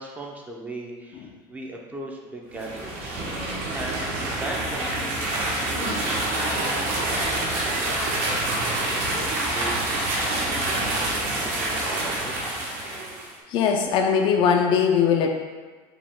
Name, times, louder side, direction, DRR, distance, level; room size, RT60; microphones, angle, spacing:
voice 1, 0.0-7.8 8.2-9.8 10.3-12.5, right 2 dB, 15° right, -1 dB, 0.5 m, -39 dB
sound 1, 2.5-13.3, right 1 dB, 65° right, 1.1 m, -27 dB
voice 2, 13.5-15.3, left 7 dB, 50° left, 3 dB, 0.4 m, -20 dB
5.0 x 2.3 x 3.5 m, 1.4 s
supercardioid pair, 135°, 12 cm